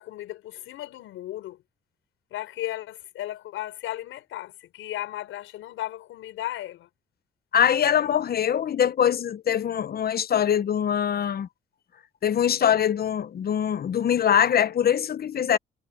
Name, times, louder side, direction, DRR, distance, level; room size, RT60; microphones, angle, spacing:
voice 1, 0.0-1.6 2.3-6.9, left 14 dB, 85° left, 5.3 m, -35 dB
voice 2, 7.5-11.5 12.2-15.6, left 9 dB, 50° left, 0.9 m, -23 dB
cardioid pair, 90°, 20 cm